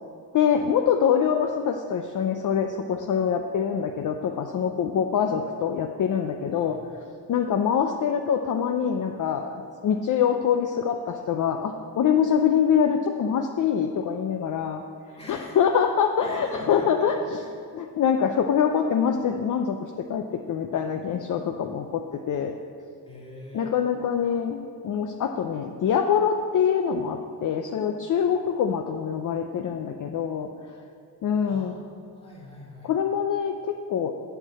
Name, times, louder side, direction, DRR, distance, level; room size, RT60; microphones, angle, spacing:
voice 1, 0.3-6.8 7.3-14.8 15.3-17.4 17.7-22.5 23.5-24.6 24.8-30.5 31.2-31.7 32.8-34.1, left 7 dB, 50° left, 5 dB, 0.5 m, -24 dB
voice 2, 15.2-15.6 16.2-17.1 17.3-17.5 23.0-23.7 31.5-31.8 32.1-32.9, left 1 dB, 15° left, -5 dB, 2.3 m, -43 dB
8.1 x 5.7 x 7.5 m, 2.3 s
cardioid pair, 125°, 40 cm